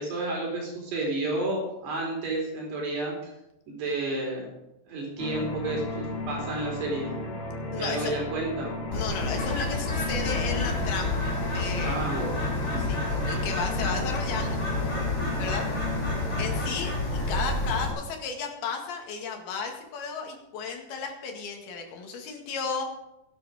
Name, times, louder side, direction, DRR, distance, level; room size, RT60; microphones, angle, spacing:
voice 1, 0.0-3.3 3.7-4.5 4.9-7.1 7.8-8.7 11.8-12.4 12.7-12.8, right 2 dB, 70° right, -1 dB, 5.9 m, -31 dB
sound 1, 5.2-16.6, left 2 dB, 85° left, 4.8 m, -35 dB
voice 2, 7.7-8.1 8.9-11.2 11.5-12.1 12.9-15.0 15.4-15.7 16.4-22.9, left 5 dB, 65° left, 2 dB, 3.8 m, -34 dB
Bird, 8.9-17.9, left 2 dB, 25° left, 5.2 m, -29 dB
17.5 x 10.0 x 5.1 m, 0.88 s
omnidirectional pair, 4.9 m